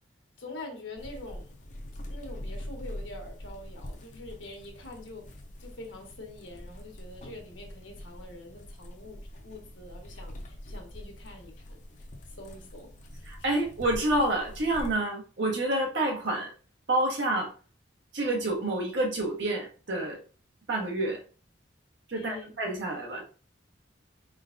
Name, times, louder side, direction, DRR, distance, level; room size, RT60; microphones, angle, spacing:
voice 1, 0.4-1.5 2.1-5.3 5.6-11.8 12.4-12.9 22.1-22.5, left 2 dB, 75° left, 2 dB, 1.3 m, -45 dB
sound 1, 1.0-14.9, equal, 40° left, 0.7 m, -44 dB
voice 2, 13.3-16.5 16.9-17.5 18.1-20.2 20.7-21.2 22.1-23.2, right 1 dB, 65° right, 0 dB, 1.3 m, -28 dB
4.5 x 3.8 x 2.5 m, 0.38 s
head